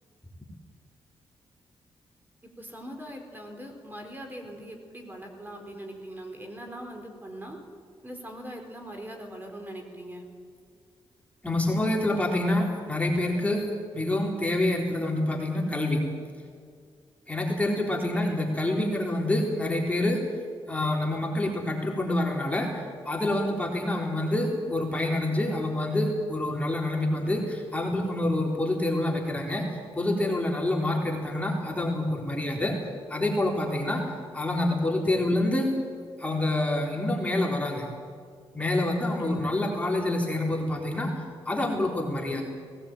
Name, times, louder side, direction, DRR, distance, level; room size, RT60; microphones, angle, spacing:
voice 1, 2.6-7.6 8.0-10.2 18.1-18.4 39.1-39.4, right 1 dB, 20° right, 3 dB, 4.1 m, -41 dB
voice 2, 11.4-13.6 13.9-16.0 17.3-20.2 20.7-22.7 23.1-29.6 30.0-32.7 33.1-34.0 34.3-35.7 36.2-37.9 38.5-41.1 41.5-42.4, left 1 dB, 15° left, -1 dB, 3.8 m, -27 dB
19.0 x 17.5 x 9.1 m, 2.1 s
cardioid pair, 80°, 9 cm